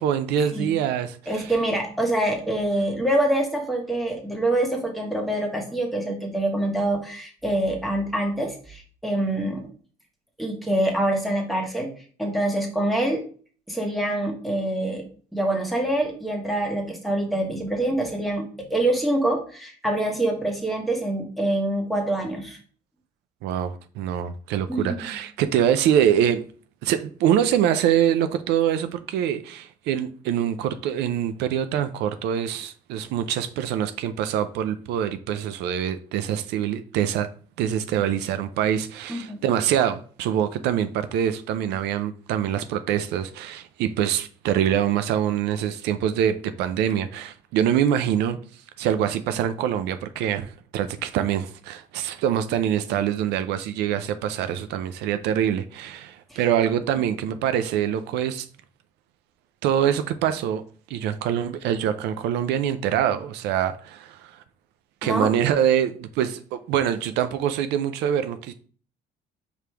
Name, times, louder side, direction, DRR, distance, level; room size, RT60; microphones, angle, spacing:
voice 1, 0.0-1.5 23.4-26.4 26.8-37.3 37.6-48.4 48.8-58.5 59.6-60.6 60.9-64.4 65.0-68.5, right 9 dB, 85° right, 0.4 m, -24 dB
voice 2, 1.3-9.6 10.4-11.9 12.2-13.2 13.7-15.0 15.3-18.4 18.7-22.6 24.7-25.1 39.1-39.4 56.3-56.4 65.0-65.3, right 1 dB, ahead, 1.3 m, -25 dB
5.0 x 3.2 x 3.3 m
cardioid pair, 110°, 17 cm